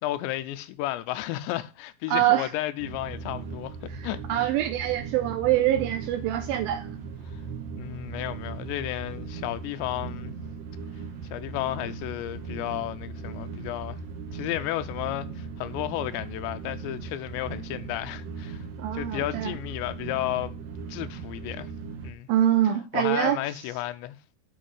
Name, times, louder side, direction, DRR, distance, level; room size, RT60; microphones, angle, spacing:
voice 1, 0.0-3.8 4.0-4.5 7.8-10.3 11.3-14.0 14.3-18.6 18.9-20.5 20.9-21.7 22.0-22.3 22.9-24.2, left 15 dB, 85° left, 2.9 m, -33 dB
voice 2, 2.1-2.5 3.9-6.9 18.8-19.6 22.3-23.4, right 12 dB, 85° right, 2.1 m, -25 dB
sound 1, 2.8-22.1, right 5 dB, 60° right, 2.6 m, -38 dB
8.4 x 5.2 x 7.7 m
omnidirectional pair, 5.1 m